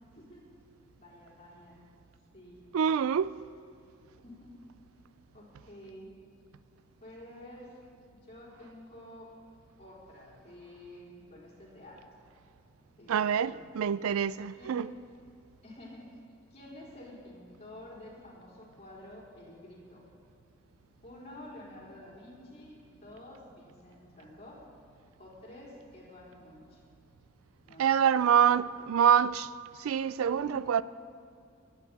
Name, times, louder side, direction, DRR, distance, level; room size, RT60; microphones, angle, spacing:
voice 1, 0.9-1.8 2.3-2.6 4.2-4.6 5.3-6.1 7.0-7.7 8.1-9.3 9.8-12.0 13.0-13.6 14.5-14.9 15.6-16.0 16.5-20.0 21.0-24.6 25.2-26.8 27.6-27.9 28.3-28.8 30.3-30.6, left 1 dB, 30° left, 4.2 m, -50 dB
voice 2, 2.7-3.3 13.1-14.9 27.8-29.5 29.8-30.8, right 8 dB, 80° right, 0.3 m, -26 dB
22.0 x 9.7 x 4.1 m
head